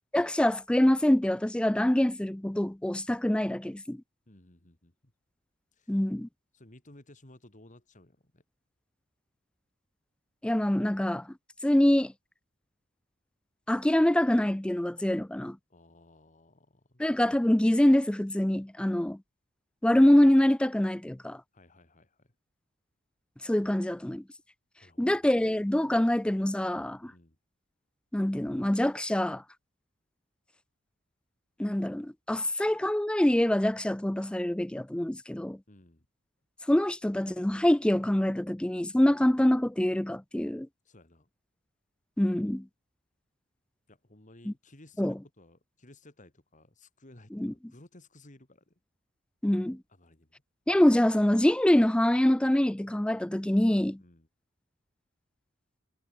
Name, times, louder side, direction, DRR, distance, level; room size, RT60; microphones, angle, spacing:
voice 1, 0.1-4.0 5.9-6.3 10.4-11.3 11.6-12.1 13.7-15.6 17.0-19.2 19.8-21.4 23.4-24.2 25.0-27.1 28.1-29.4 31.6-35.6 36.7-40.7 42.2-42.7 44.5-44.6 45.0-45.1 47.3-47.5 49.4-49.8 50.7-54.0, left 1 dB, 5° left, 0.3 m, -25 dB
voice 2, 4.3-5.1 5.7-6.0 6.5-8.4 15.7-17.0 21.5-22.3 24.8-25.7 27.0-27.4 35.7-36.1 40.8-41.3 43.9-48.7 49.9-50.4 54.0-54.3, left 1 dB, 35° left, 2.7 m, -56 dB
head